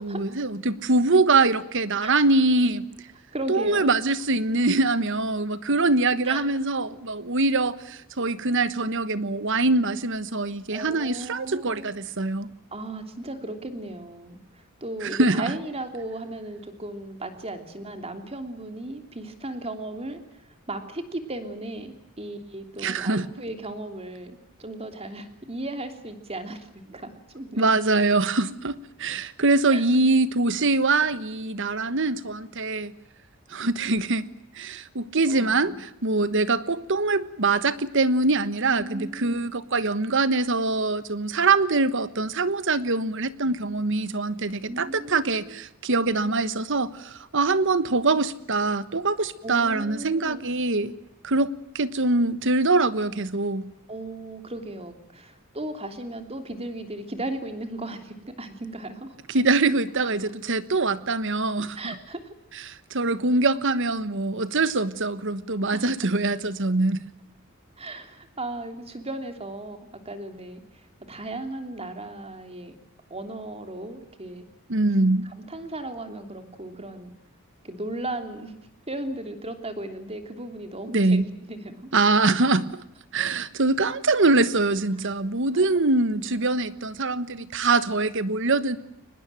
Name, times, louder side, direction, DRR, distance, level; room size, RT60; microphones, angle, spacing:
voice 1, 0.0-2.9 3.5-12.5 15.0-15.5 22.8-23.3 27.6-32.9 33.5-34.3 34.5-50.9 51.2-53.7 59.3-61.9 62.7-67.0 74.7-75.3 80.9-81.2 81.9-82.8 83.1-88.8, right 3 dB, 60° right, 15 dB, 1.3 m, -23 dB
voice 2, 3.3-4.0 6.3-6.4 10.7-11.9 12.7-14.4 14.8-20.4 20.7-27.6 29.7-29.8 35.3-35.8 38.6-39.5 44.6-45.6 49.4-50.4 53.9-59.1 61.7-62.2 65.7-65.8 67.8-70.6 71.0-72.8 73.1-74.4 75.2-77.1 77.6-78.5 78.9-81.9 85.0-85.1, right 1 dB, 30° right, 7 dB, 3.1 m, -36 dB
24.0 x 20.0 x 9.2 m, 0.84 s
head